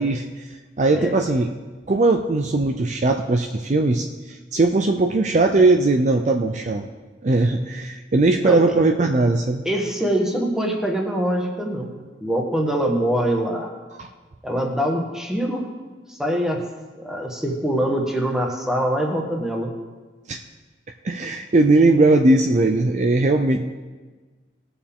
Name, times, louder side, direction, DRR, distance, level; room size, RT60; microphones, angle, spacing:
voice 1, 0.0-1.5 1.9-6.9 7.2-9.7 14.0-14.1 20.3-20.4 21.0-23.6, right 2 dB, 40° right, 4 dB, 0.5 m, -19 dB
voice 2, 9.6-13.7 14.4-15.7 16.1-16.6 17.0-19.7, right 1 dB, 5° right, 1 dB, 1.3 m, -24 dB
19.0 x 7.0 x 3.6 m, 1.3 s
head